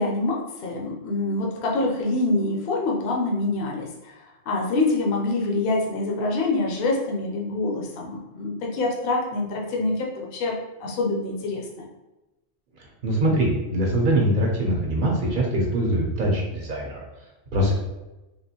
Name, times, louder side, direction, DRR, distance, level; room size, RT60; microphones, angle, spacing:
voice 1, 0.0-4.1 4.5-11.9, left 2 dB, 60° left, -1 dB, 0.8 m, -26 dB
voice 2, 13.0-17.0 17.5-17.7, right 1 dB, 55° right, -1 dB, 0.7 m, -23 dB
3.5 x 2.5 x 2.7 m, 1.0 s
omnidirectional pair, 1.2 m